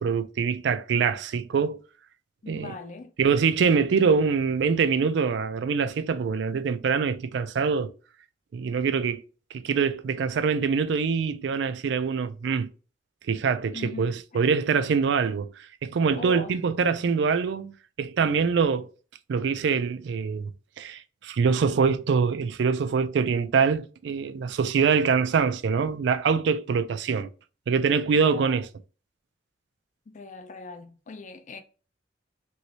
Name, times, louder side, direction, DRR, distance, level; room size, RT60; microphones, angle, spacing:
voice 1, 0.0-1.8 2.5-2.7 3.2-7.9 8.5-9.2 9.5-12.7 13.3-18.9 19.3-20.5 20.8-27.3 27.7-28.7, right 5 dB, 65° right, 0.3 m, -24 dB
voice 2, 2.4-3.1 13.7-14.1 16.1-16.5 28.2-28.6 30.1-31.6, left 3 dB, 40° left, 0.4 m, -40 dB
3.1 x 3.0 x 2.7 m
head